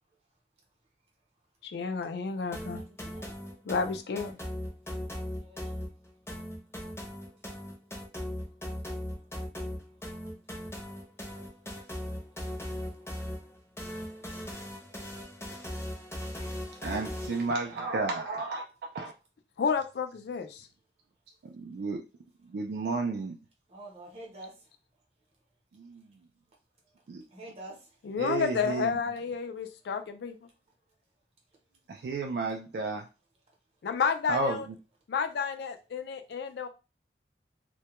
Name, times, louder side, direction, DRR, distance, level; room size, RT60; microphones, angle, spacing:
voice 1, 1.6-2.8 3.7-4.4 19.6-20.7 28.0-30.4 33.8-34.6 35.1-36.7, left 5 dB, 70° left, 8 dB, 0.4 m, -31 dB
sound 1, 2.5-17.5, left 1 dB, 15° left, 0.6 m, -38 dB
voice 2, 2.7-3.4 4.9-5.8 23.7-24.5 27.3-27.8, right 2 dB, 35° right, -1 dB, 0.7 m, -47 dB
voice 3, 16.8-18.7 18.9-19.1 21.4-22.0 22.4-23.4 25.7-26.2 27.1-27.2 28.2-29.1 31.9-33.1 34.3-34.8, right 3 dB, 65° right, 2 dB, 0.3 m, -32 dB
2.2 x 2.1 x 2.9 m, 0.30 s
head